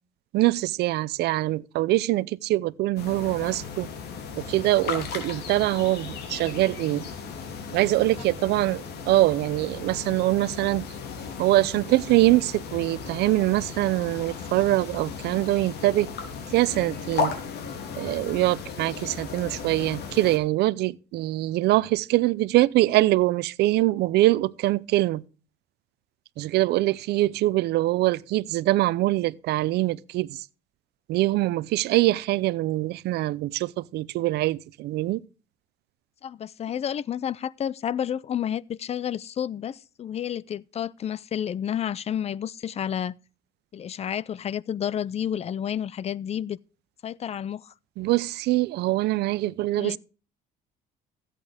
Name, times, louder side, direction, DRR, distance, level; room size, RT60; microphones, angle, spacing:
voice 1, 0.3-3.9 4.4-7.1 7.7-10.9 11.4-16.1 16.5-17.3 18.0-25.2 26.4-30.4 31.1-35.2 48.0-50.0, right 17 dB, 75° right, 0.6 m, -23 dB
sound 1, 3.0-20.4, left 6 dB, 75° left, 2.8 m, -36 dB
voice 2, 36.2-43.2 43.7-46.6 47.0-47.7 49.8-50.0, left 9 dB, 40° left, 0.5 m, -30 dB
14.5 x 8.4 x 3.5 m
cardioid pair, 110°, 17 cm